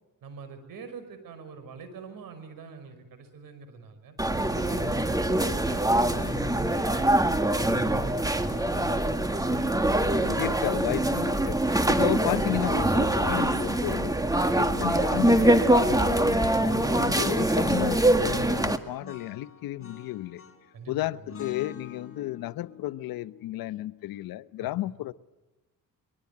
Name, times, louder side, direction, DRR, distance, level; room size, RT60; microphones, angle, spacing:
voice 1, 0.2-4.2 4.5-9.9 20.7-21.3 24.6-24.9, right 5 dB, 75° right, 10 dB, 5.7 m, -45 dB
sound 1, 4.2-18.8, right 1 dB, 10° right, 1.8 m, -24 dB
sound 2, 6.1-6.8 7.6-9.1 10.1-11.5 12.3-13.8 14.6-15.9 16.7-17.1 17.4-18.2 19.0-20.8 21.3-24.3, left 6 dB, 40° left, 4.0 m, -45 dB
voice 2, 10.2-14.2 14.6-16.5 17.0-20.4 20.9-25.1, left 15 dB, 90° left, 16 dB, 0.9 m, -33 dB
24.0 x 21.5 x 8.5 m, 1.1 s
cardioid pair, 90°, 34 cm